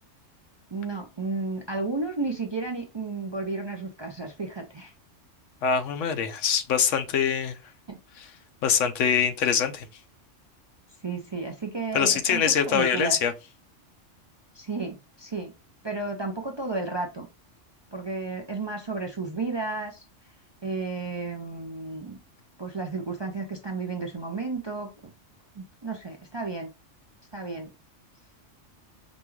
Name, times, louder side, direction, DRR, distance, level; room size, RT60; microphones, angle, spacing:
voice 1, 0.7-4.9 7.9-8.0 11.0-13.2 14.5-15.5 15.8-17.3 17.9-20.0 20.6-22.2 22.6-25.1 25.6-26.7 27.3-27.7, right 3 dB, 40° right, 0.3 m, -32 dB
voice 2, 5.6-7.6 8.2-8.3 8.6-9.9 11.9-13.3, left 7 dB, 80° left, 1.0 m, -24 dB
5.1 x 2.3 x 3.1 m
omnidirectional pair, 1.3 m